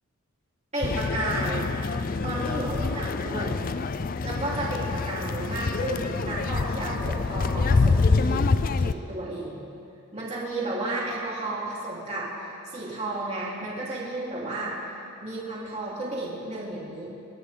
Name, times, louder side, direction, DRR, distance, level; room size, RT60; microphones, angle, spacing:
voice 1, 0.7-1.7 2.2-3.6 4.2-8.5 8.8-9.7 10.1-14.7 15.2-17.1, right 2 dB, 30° right, -7 dB, 3.6 m, -32 dB
sound 1, 0.8-8.9, left 4 dB, 40° left, 0.4 m, -26 dB
30.0 x 10.5 x 3.7 m, 2.7 s
head